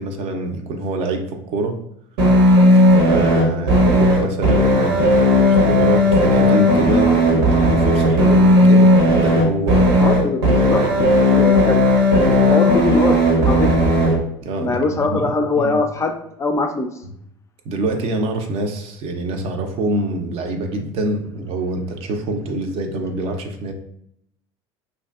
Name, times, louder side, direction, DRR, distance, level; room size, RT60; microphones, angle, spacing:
voice 1, 0.0-1.8 3.1-10.0 10.7-10.9 14.4-15.8 17.7-23.7, right 2 dB, 55° right, 5 dB, 0.5 m, -25 dB
sound 1, 2.2-14.2, left 1 dB, 80° right, 0.7 m, -14 dB
voice 2, 10.0-13.7 14.6-16.9, left 3 dB, 25° left, 5 dB, 0.3 m, -22 dB
2.6 x 2.5 x 2.3 m, 0.74 s
supercardioid pair, 95°, 12 cm